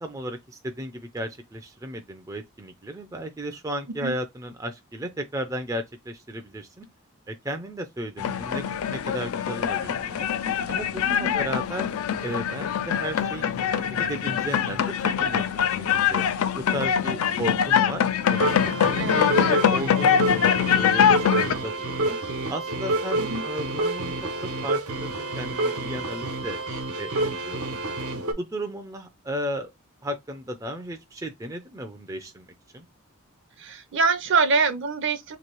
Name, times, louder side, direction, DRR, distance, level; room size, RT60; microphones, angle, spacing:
voice 1, 0.0-6.9 7.3-10.3 10.7-11.9 12.2-13.5 13.9-16.2 16.6-18.0 18.3-22.2 22.5-24.1 24.4-26.6 27.0-27.6 28.4-29.7 30.0-32.5 32.7-32.9, right 1 dB, 15° right, 0.4 m, -34 dB
sound 1, 8.2-21.5, left 8 dB, 75° left, 0.4 m, -24 dB
sound 2, 18.3-28.3, right 2 dB, 85° right, 1.1 m, -28 dB
voice 2, 33.6-35.4, right 4 dB, 55° right, 0.6 m, -24 dB
3.0 x 2.7 x 4.4 m
head